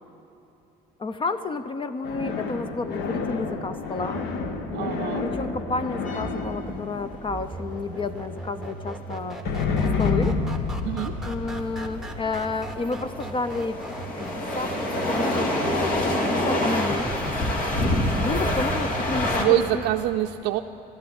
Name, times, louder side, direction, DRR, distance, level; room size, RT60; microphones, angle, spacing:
voice 1, 1.0-4.2 5.2-9.4 10.0-10.4 11.2-13.8 14.2-17.1 18.2-19.8, left 3 dB, 30° left, 11 dB, 0.6 m, -31 dB
sound 1, 2.0-8.0 9.4-14.8, left 4 dB, 85° left, 1.2 m, -30 dB
sound 2, 4.0-19.4, right 2 dB, ahead, 1.2 m, -37 dB
voice 2, 4.7-5.3 10.8-11.2 19.3-20.6, right 14 dB, 90° right, 4 dB, 0.4 m, -25 dB
sound 3, 6.1-19.4, left 1 dB, 55° left, 2.2 m, -27 dB
12.5 x 11.0 x 8.8 m, 2.8 s
cardioid pair, 110°, 17 cm